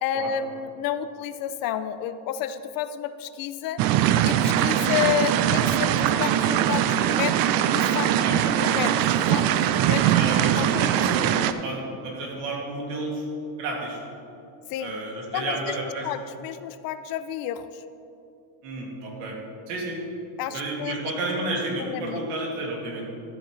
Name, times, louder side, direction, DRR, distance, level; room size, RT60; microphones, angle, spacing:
voice 1, 0.0-3.8 4.2-7.4 7.7-8.1 8.6-9.5 9.9-10.1 10.6-10.9 14.7-14.9 15.3-17.8 20.4-21.2 21.8-22.3, left 10 dB, 50° left, 12 dB, 0.5 m, -30 dB
sound 1, 3.8-11.5, right 10 dB, 50° right, 0.5 m, -22 dB
voice 2, 8.2-8.5 10.1-13.2 13.6-14.0 14.8-16.1 18.6-19.4 19.7-20.0 20.5-23.1, right 2 dB, 85° right, -2 dB, 2.5 m, -31 dB
12.5 x 8.6 x 3.2 m, 2.7 s
supercardioid pair, 130°, 47 cm